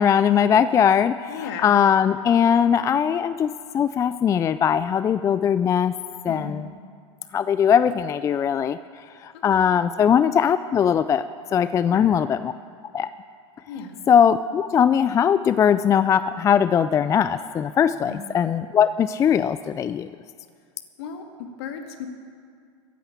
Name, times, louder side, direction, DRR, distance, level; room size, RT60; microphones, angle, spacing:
voice 1, 0.0-5.9 6.2-6.7 7.3-8.8 9.2-11.3 11.5-12.5 12.9-13.1 14.1-20.1, left 8 dB, 20° left, 14 dB, 0.3 m, -20 dB
voice 2, 1.3-1.8 6.3-6.7 9.5-9.7 11.8-12.0 13.7-14.0 18.0-18.3 21.0-22.1, left 6 dB, 60° left, 5 dB, 2.0 m, -36 dB
14.5 x 9.5 x 8.6 m, 2.2 s
figure-of-eight pair, 90°, 15 cm